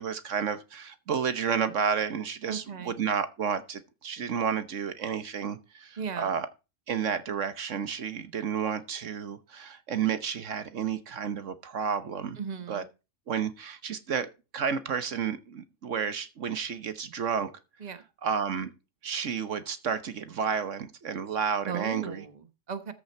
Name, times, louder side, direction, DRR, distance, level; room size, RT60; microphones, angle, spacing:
voice 1, 0.0-6.5 6.9-12.4 12.7-12.8 13.3-17.5 18.2-18.7 19.0-22.2, right 7 dB, 75° right, 1.4 m, -31 dB
voice 2, 2.5-3.0 6.0-6.4 12.4-12.9 17.8-18.0 21.6-22.9, right 6 dB, 35° right, 1.3 m, -37 dB
14.0 x 6.2 x 4.3 m
omnidirectional pair, 1.3 m